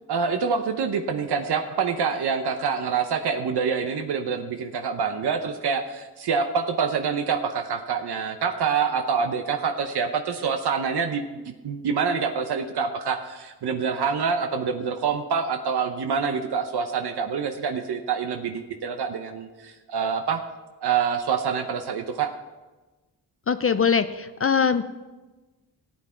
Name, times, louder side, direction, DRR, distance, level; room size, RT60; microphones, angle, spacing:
voice 1, 0.1-20.4 20.8-22.3, right 6 dB, 80° right, 6 dB, 0.9 m, -26 dB
voice 2, 23.5-24.8, left 6 dB, 35° left, 11 dB, 0.5 m, -22 dB
15.0 x 8.8 x 4.5 m, 1.2 s
cardioid pair, 95°, 39 cm